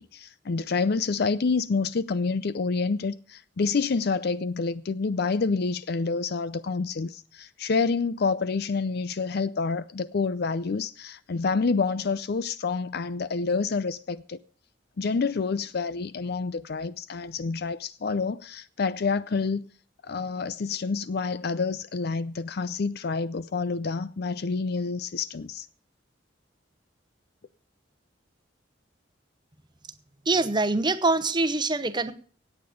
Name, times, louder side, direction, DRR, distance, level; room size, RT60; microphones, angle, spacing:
voice 1, 0.0-14.4 15.0-19.6 20.0-25.7, left 4 dB, 60° left, 0.5 m, -28 dB
voice 2, 30.2-32.1, right 3 dB, 25° right, 1.0 m, -24 dB
17.0 x 8.9 x 5.1 m
head